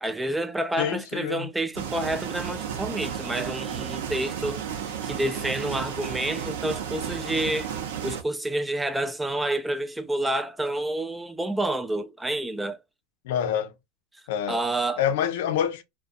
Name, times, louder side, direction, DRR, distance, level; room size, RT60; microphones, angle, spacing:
voice 1, 0.0-4.6 5.0-7.7 8.0-12.8 14.5-15.0, right 1 dB, 5° right, 0.3 m, -29 dB
voice 2, 0.8-1.5 13.2-13.7 14.3-14.6 15.0-15.8, left 9 dB, 80° left, 0.5 m, -26 dB
sound 1, 1.7-8.2, right 8 dB, 85° right, 0.6 m, -33 dB
2.4 x 2.2 x 2.4 m
supercardioid pair, 140°, 0 cm